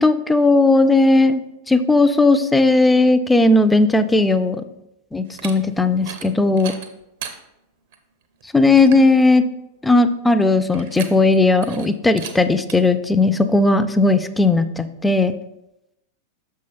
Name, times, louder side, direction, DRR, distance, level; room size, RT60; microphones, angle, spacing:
voice 1, 0.0-4.6 5.1-6.7 8.5-9.5 9.8-15.3, left 2 dB, 10° left, 11 dB, 0.4 m, -16 dB
sound 1, 5.2-5.5 6.0-6.3 6.6-7.4 7.9-8.0 8.4-8.5 8.7-9.1 10.7-11.4 11.6-11.9 12.2-12.3 12.7-12.8, right 8 dB, 55° right, 0.6 m, -35 dB
6.3 x 5.5 x 3.4 m, 0.88 s
figure-of-eight pair, 90°, 0 cm